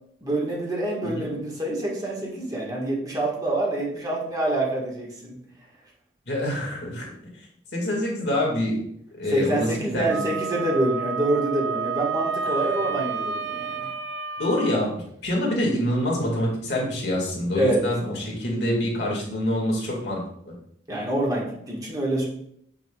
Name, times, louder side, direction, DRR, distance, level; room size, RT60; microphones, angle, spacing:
voice 1, 0.2-5.3 9.3-13.9 17.5-17.8 20.9-22.3, right 1 dB, 20° right, -4 dB, 1.5 m, -26 dB
voice 2, 6.3-7.1 7.7-8.8 9.2-10.6 14.4-20.2 20.5-20.6, left 1 dB, 65° left, -2 dB, 2.0 m, -26 dB
Wind instrument woodwind instrument, 10.1-14.9, right 5 dB, 90° right, 0.4 m, -30 dB
7.3 x 5.9 x 2.3 m, 0.71 s
head